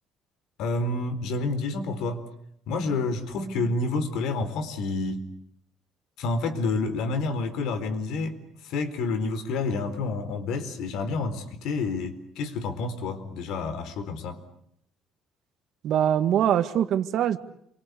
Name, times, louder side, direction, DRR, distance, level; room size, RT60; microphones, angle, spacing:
voice 1, 0.6-2.2 2.7-5.2 6.2-8.4 8.6-14.4, left 3 dB, 80° left, 9 dB, 4.3 m, -29 dB
voice 2, 15.8-17.4, right 10 dB, 60° right, 10 dB, 1.9 m, -23 dB
28.5 x 24.0 x 8.4 m, 0.71 s
cardioid pair, 135°, 0 cm